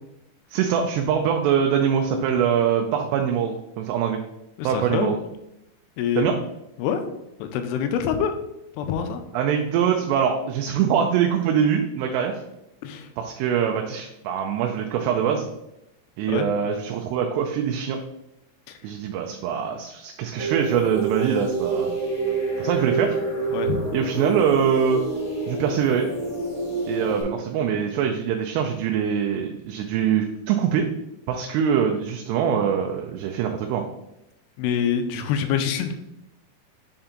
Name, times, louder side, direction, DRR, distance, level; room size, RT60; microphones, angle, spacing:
voice 1, 0.5-4.2 4.6-5.2 6.2-6.4 9.3-12.4 13.2-15.5 16.2-18.0 18.8-21.9 22.6-23.2 23.9-25.0 25.5-26.1 26.9-30.9 31.3-33.8, right 8 dB, 90° right, 3 dB, 2.8 m, -23 dB
voice 2, 4.6-5.1 6.0-6.2 6.8-7.0 7.4-8.3 8.8-9.2 12.8-13.1 16.3-16.5 18.7-18.8 23.5-23.9 34.6-36.0, left 8 dB, 85° left, 7 dB, 2.7 m, -25 dB
sound 1, 20.4-27.2, right 3 dB, 60° left, 0.9 m, -27 dB
6.8 x 4.3 x 3.8 m, 0.86 s
omnidirectional pair, 4.7 m